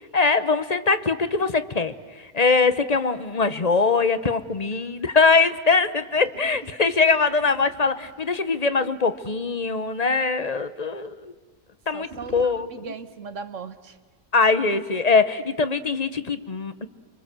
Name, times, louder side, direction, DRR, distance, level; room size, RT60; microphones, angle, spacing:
voice 1, 0.1-11.3 11.9-12.7 14.3-16.9, left 4 dB, 30° left, 12 dB, 0.9 m, -22 dB
sound 1, 6.1-9.9 11.8-12.4, right 2 dB, 35° right, 3.1 m, -47 dB
voice 2, 11.9-14.0, right 5 dB, 60° right, 12 dB, 1.4 m, -38 dB
28.0 x 25.0 x 7.6 m, 1.5 s
omnidirectional pair, 1.5 m